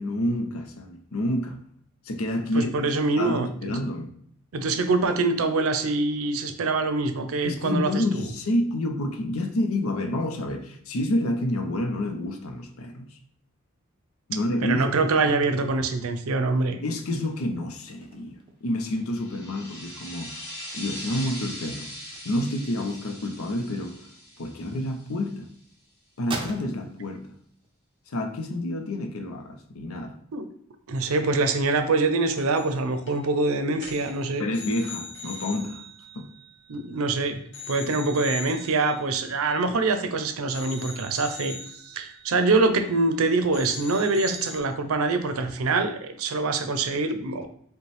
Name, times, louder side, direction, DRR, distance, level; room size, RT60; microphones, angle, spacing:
voice 1, 0.0-1.6 2.0-4.1 7.4-13.2 14.3-15.4 16.8-20.3 20.7-21.9 22.2-24.0 24.4-25.5 26.2-27.3 28.1-30.2 34.4-35.8 36.1-36.3, left 1 dB, 85° left, 0.6 m, -29 dB
voice 2, 2.5-3.7 4.5-8.2 14.6-16.8 30.3-30.5 30.9-34.4 36.7-37.4 37.7-41.6 41.8-47.5, right 3 dB, 85° right, 0.5 m, -24 dB
sound 1, 15.6-25.0 25.4-27.9 28.2-29.7, right 3 dB, 25° right, 0.5 m, -44 dB
sound 2, 19.1-25.4, equal, 10° left, 1.0 m, -41 dB
sound 3, 32.4-32.8 33.1-33.3 33.7-37.1 37.5-40.1 40.5-43.2 43.5-44.6, left 3 dB, 60° left, 0.8 m, -42 dB
5.1 x 2.2 x 3.2 m
head